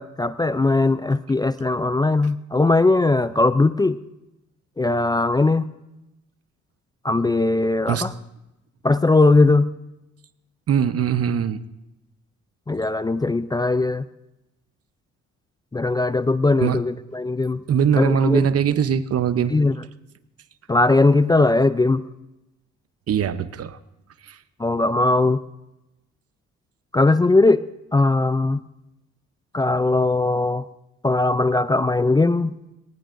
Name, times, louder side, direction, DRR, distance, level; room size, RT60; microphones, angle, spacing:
voice 1, 0.0-4.0 4.8-5.7 7.0-8.1 8.8-9.7 12.7-14.0 15.7-17.6 17.9-18.5 19.5-19.7 20.7-22.0 24.6-25.4 26.9-27.6 27.9-28.6 29.5-30.6 31.0-32.5, left 2 dB, 15° left, 13 dB, 0.4 m, -19 dB
voice 2, 10.7-11.6 16.6-16.8 17.7-19.5 23.1-23.8 24.2-24.4, right 8 dB, 50° right, 13 dB, 0.8 m, -21 dB
20.5 x 19.0 x 2.6 m, 0.94 s
cardioid pair, 90°, 30 cm